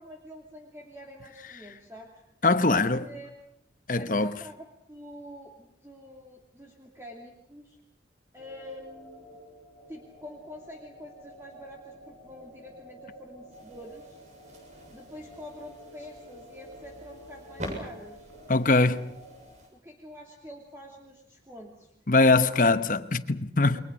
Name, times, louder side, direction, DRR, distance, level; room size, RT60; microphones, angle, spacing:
voice 1, 0.0-2.2 2.7-3.3 4.0-7.8 8.3-9.3 9.9-14.2 14.9-18.3 19.7-21.9 22.3-22.7 23.7-23.8, left 1 dB, 15° right, 2.8 m, -46 dB
voice 2, 2.4-3.1 3.9-4.3 18.5-19.1 22.1-23.8, left 3 dB, 45° left, 1.0 m, -22 dB
sound 1, 8.4-19.5, equal, 90° right, 6.1 m, -50 dB
sound 2, 13.5-19.7, equal, 40° right, 7.5 m, -45 dB
29.5 x 22.5 x 6.5 m
head